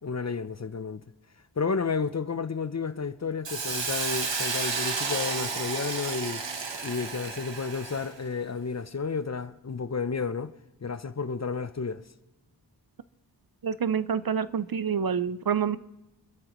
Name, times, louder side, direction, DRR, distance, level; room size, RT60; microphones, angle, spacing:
voice 1, 0.0-1.0 1.6-6.5 6.8-10.5 10.8-12.0, left 5 dB, 40° left, 0.6 m, -31 dB
Hiss, 3.4-8.2, right 4 dB, 85° right, 1.4 m, -32 dB
voice 2, 13.6-15.8, right 7 dB, 55° right, 0.6 m, -27 dB
26.0 x 13.0 x 3.1 m
wide cardioid pair, 45°, 43 cm